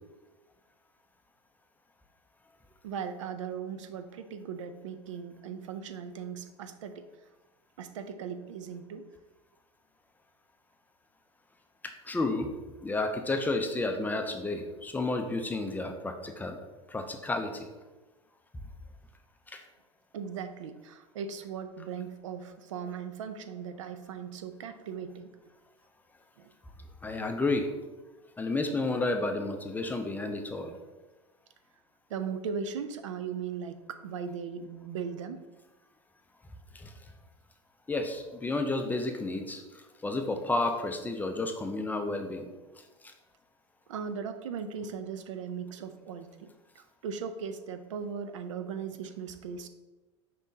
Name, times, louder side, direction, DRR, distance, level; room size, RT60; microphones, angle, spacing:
voice 1, 2.8-7.0 7.8-9.0 20.1-25.3 26.4-26.5 32.1-35.4 43.9-46.5 46.8-49.7, right 6 dB, 85° right, 9 dB, 0.4 m, -38 dB
voice 2, 12.0-12.5 12.8-16.6 16.9-17.7 19.5-19.6 27.0-27.7 28.4-30.8 36.7-36.9 37.9-42.5 43.0-43.1, left 2 dB, 10° left, 5 dB, 0.4 m, -31 dB
5.1 x 3.5 x 2.7 m, 1.2 s
hypercardioid pair, 100°, 16 cm